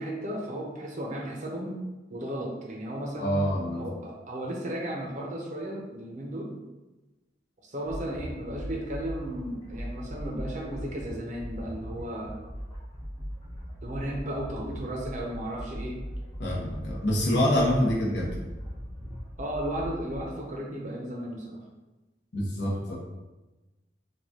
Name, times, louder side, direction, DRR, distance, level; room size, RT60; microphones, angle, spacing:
voice 1, 0.0-1.8 2.1-3.4 3.7-6.5 7.6-12.4 13.8-16.0 19.4-21.6, right 1 dB, 40° right, -1 dB, 0.7 m, -35 dB
voice 2, 3.2-3.8 16.4-18.4 22.3-23.0, equal, 65° left, -3 dB, 1.0 m, -26 dB
sound 1, 7.8-20.2, equal, 20° left, 1.0 m, -39 dB
4.7 x 2.4 x 2.9 m, 1.1 s
head